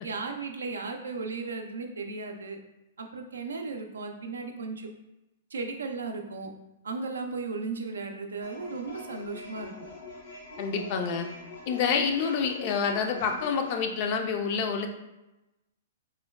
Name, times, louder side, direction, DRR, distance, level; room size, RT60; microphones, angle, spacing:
voice 1, 0.0-2.6 3.0-4.9 5.5-6.5 6.8-9.7, right 4 dB, 85° right, 4 dB, 0.4 m, -35 dB
sound 1, 8.4-13.7, left 3 dB, 75° left, 0.8 m, -44 dB
voice 2, 10.6-11.3 11.7-14.9, left 6 dB, 45° left, 5 dB, 0.4 m, -28 dB
3.6 x 2.2 x 2.2 m, 0.97 s
hypercardioid pair, 125°, 0 cm